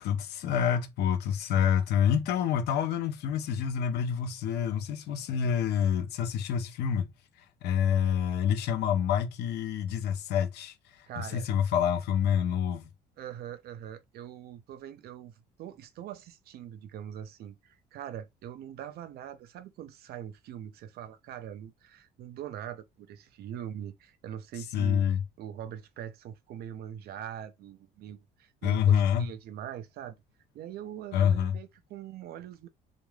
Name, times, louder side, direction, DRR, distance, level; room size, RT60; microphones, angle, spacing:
voice 1, 0.0-7.1 7.6-12.9 24.7-25.2 28.6-29.3 31.1-31.6, left 8 dB, 75° left, 0.6 m, -27 dB
voice 2, 11.1-11.5 13.2-25.0 25.4-30.2 30.5-32.7, right 10 dB, 65° right, 0.6 m, -42 dB
3.1 x 2.2 x 2.3 m
cardioid pair, 110°, 17 cm